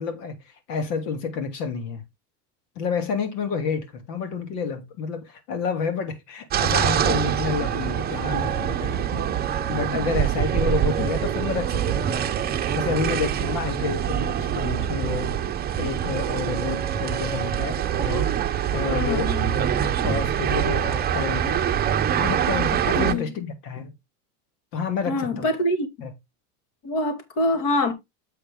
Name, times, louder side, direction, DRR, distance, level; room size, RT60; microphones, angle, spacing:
voice 1, 0.0-2.0 2.8-15.4 15.8-18.4 18.7-19.4 20.0-21.8 22.2-23.9 24.7-25.5 26.0-26.1, left 5 dB, 85° left, 2.9 m, -29 dB
sound 1, 6.5-23.1, right 9 dB, 20° right, 0.7 m, -24 dB
voice 2, 18.9-19.6 23.0-23.3 25.1-25.9 26.8-27.9, left 1 dB, 60° left, 2.9 m, -25 dB
7.8 x 6.0 x 3.6 m
supercardioid pair, 140°, 47 cm